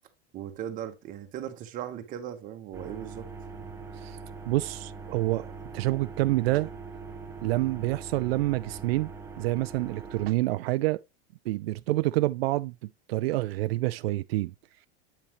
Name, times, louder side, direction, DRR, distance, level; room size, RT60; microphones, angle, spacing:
voice 1, 0.3-3.3 3.5-3.7, right 10 dB, 25° right, 1.1 m, -38 dB
sound 1, 2.7-10.3, right 4 dB, 10° right, 0.6 m, -42 dB
voice 2, 4.5-5.5 5.7-6.7 7.4-9.1 9.4-11.0 11.5-12.7 13.1-14.5, right 18 dB, 80° right, 0.4 m, -27 dB
8.5 x 5.6 x 3.0 m
supercardioid pair, 165°, 30 cm